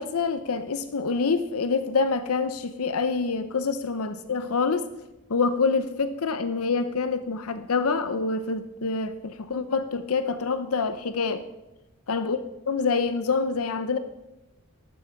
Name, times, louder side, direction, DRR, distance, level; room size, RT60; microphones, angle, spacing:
voice 1, 0.0-4.9 5.3-11.5 12.1-12.4 12.7-14.0, left 4 dB, 85° left, 0.8 m, -26 dB
13.5 x 12.0 x 5.8 m
head